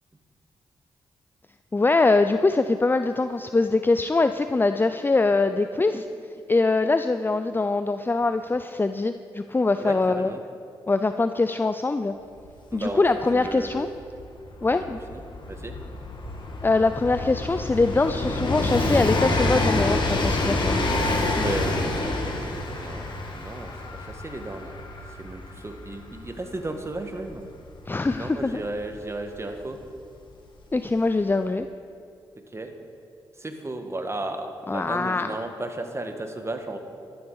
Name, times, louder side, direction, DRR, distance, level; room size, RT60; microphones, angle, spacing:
voice 1, 1.7-6.0 6.5-10.3 10.9-12.1 12.7-13.9 14.6-15.0 16.6-20.8 27.9-28.6 30.7-31.7 34.7-35.3, left 3 dB, 20° left, 10 dB, 0.5 m, -23 dB
voice 2, 9.8-10.4 12.7-13.0 13.3-13.9 15.1-15.2 15.5-15.7 21.3-23.1 23.3-24.7 25.2-27.4 28.1-29.8 32.5-32.7 33.4-36.8, right 2 dB, 30° right, 5 dB, 1.6 m, -34 dB
Train, 12.4-12.5 12.7-29.3 30.3-30.4, left 2 dB, 55° left, 2.1 m, -28 dB
13.0 x 12.5 x 4.8 m, 2.4 s
supercardioid pair, 50°, 10 cm